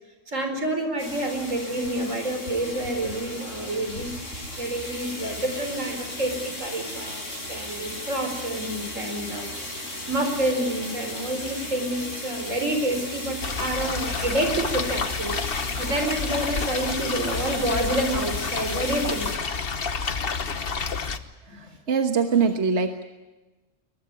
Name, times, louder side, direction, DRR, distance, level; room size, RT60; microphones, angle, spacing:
voice 1, 0.3-19.3 21.5-21.7, right 1 dB, 85° right, 5 dB, 4.9 m, -28 dB
sound 1, 1.0-19.4, left 1 dB, 85° left, 6.4 m, -36 dB
sound 2, 13.4-21.2, left 5 dB, 50° left, 1.3 m, -29 dB
voice 2, 21.4-23.1, right 5 dB, 65° right, 6 dB, 1.6 m, -23 dB
23.0 x 21.0 x 9.7 m, 1.1 s
omnidirectional pair, 1.3 m